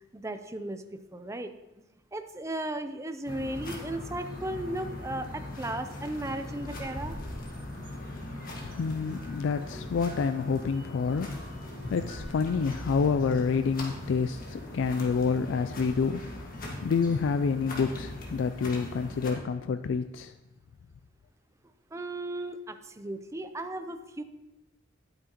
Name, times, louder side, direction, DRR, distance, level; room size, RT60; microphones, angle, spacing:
voice 1, 0.1-1.5 2.1-7.2 21.9-24.2, right 1 dB, 15° right, 9 dB, 0.5 m, -36 dB
sound 1, 3.3-19.3, left 1 dB, 45° left, 1.7 m, -40 dB
sound 2, 6.3-13.1, right 1 dB, 50° right, 2.1 m, -53 dB
voice 2, 8.8-11.6 11.9-16.5 16.8-20.3, left 5 dB, 75° left, 10 dB, 0.3 m, -28 dB
11.0 x 8.7 x 3.0 m, 0.98 s
head